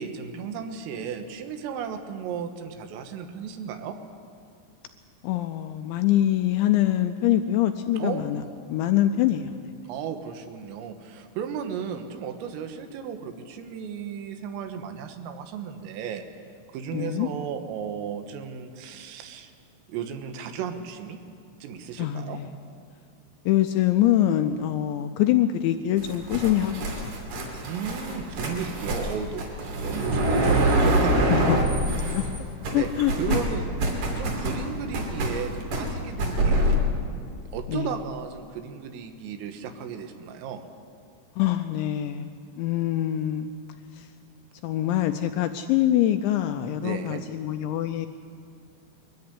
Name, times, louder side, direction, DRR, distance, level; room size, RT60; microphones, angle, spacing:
voice 1, 0.0-4.0 8.0-8.5 9.9-16.2 16.7-19.5 19.9-21.2 21.6-22.4 27.6-29.5 29.8-31.1 32.7-32.9 33.2-33.6 34.2-36.8 37.5-40.6 46.8-47.2, right 7 dB, 85° right, 7 dB, 4.0 m, -34 dB
voice 2, 5.2-8.4 8.7-9.7 16.9-17.3 22.0-22.5 23.5-27.5 31.3-32.3 32.7-33.4 37.7-37.9 41.4-43.5 43.9-44.1 44.6-48.1, left 12 dB, 85° left, 8 dB, 2.7 m, -24 dB
sound 1, 26.0-32.4 32.6-36.8, right 1 dB, 45° right, 3.8 m, -25 dB
22.5 x 14.0 x 9.8 m, 2.4 s
omnidirectional pair, 5.8 m